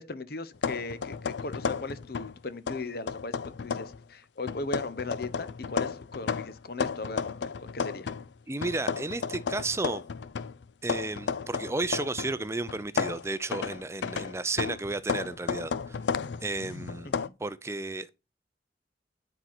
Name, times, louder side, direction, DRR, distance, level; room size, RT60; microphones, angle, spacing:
voice 1, 0.0-8.1 17.0-17.3, left 3 dB, 60° left, 0.9 m, -38 dB
sound 1, 0.6-2.4 2.7-4.0 4.5-8.3 8.6-12.4 12.7-17.3, left 5 dB, 80° left, 0.5 m, -33 dB
voice 2, 8.5-10.0 10.8-16.0 16.4-17.1 17.4-18.1, right 2 dB, 15° right, 0.5 m, -33 dB
10.5 x 4.4 x 5.9 m
head